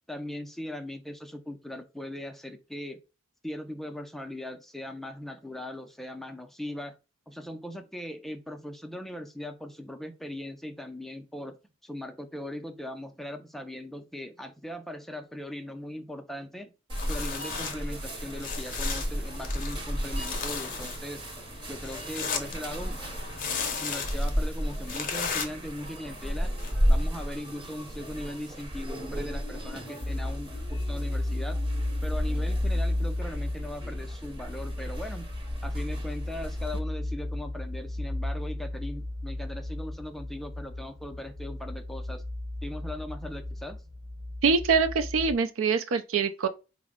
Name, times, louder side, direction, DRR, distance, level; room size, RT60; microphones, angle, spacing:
voice 1, 0.1-3.0 3.4-6.9 7.3-11.6 11.8-16.7 17.1-21.2 21.7-23.0 23.8-26.5 26.9-31.6 32.0-35.3 35.6-42.2 42.6-43.8, left 1 dB, ahead, 0.3 m, -39 dB
sound 1, 16.9-26.7, left 5 dB, 45° left, 0.6 m, -36 dB
sound 2, 16.9-36.8, equal, 25° right, 0.7 m, -34 dB
sound 3, 30.0-45.4, left 1 dB, 50° right, 1.0 m, -33 dB
voice 2, 44.4-46.5, right 5 dB, 85° right, 0.4 m, -24 dB
4.1 x 2.0 x 3.5 m
head